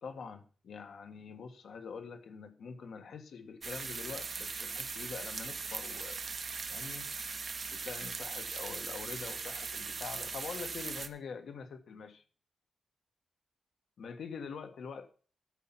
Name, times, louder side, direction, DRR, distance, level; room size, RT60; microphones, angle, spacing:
voice 1, 0.0-6.2 6.7-7.1 7.7-12.2 14.0-15.1, left 5 dB, 70° left, 1.4 m, -45 dB
sound 1, 3.6-11.1, right 5 dB, 40° right, 0.8 m, -39 dB
13.5 x 5.6 x 5.6 m
wide cardioid pair, 155°, 0 cm